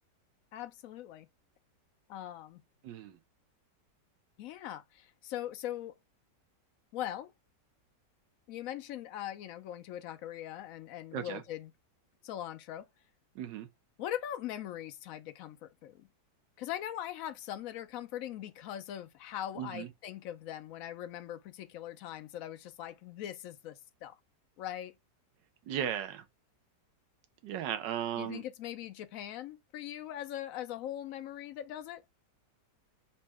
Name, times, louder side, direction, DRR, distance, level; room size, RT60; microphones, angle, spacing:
voice 1, 0.5-1.3 2.1-2.6 4.4-5.9 6.9-7.3 8.5-11.7 12.2-12.9 14.0-16.1 16.6-24.2 24.6-24.9 28.2-32.0, left 11 dB, 70° left, 0.8 m, -41 dB
voice 2, 2.8-3.2 11.1-11.4 13.3-13.7 19.6-19.9 25.7-26.2 27.4-28.4, right 10 dB, 85° right, 1.3 m, -36 dB
4.1 x 2.1 x 3.3 m
omnidirectional pair, 1.9 m